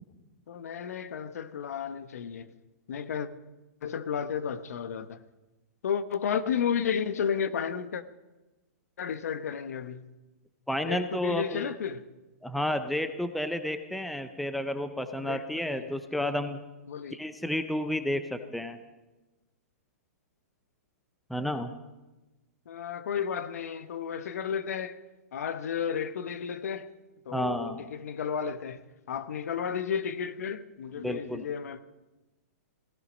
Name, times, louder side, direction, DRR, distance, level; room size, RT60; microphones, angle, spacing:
voice 1, 0.5-2.5 2.9-3.3 3.8-5.2 5.8-8.0 9.0-10.0 10.8-12.1 15.2-15.9 16.2-16.3 16.9-17.2 22.7-25.0 25.3-26.9 27.2-31.8, left 7 dB, 70° left, 1.1 m, -33 dB
voice 2, 10.7-11.7 12.4-16.6 17.1-18.8 21.3-21.7 27.3-27.8 31.0-31.5, left 1 dB, ahead, 0.5 m, -31 dB
16.5 x 15.5 x 5.2 m
hypercardioid pair, 165°, 9 cm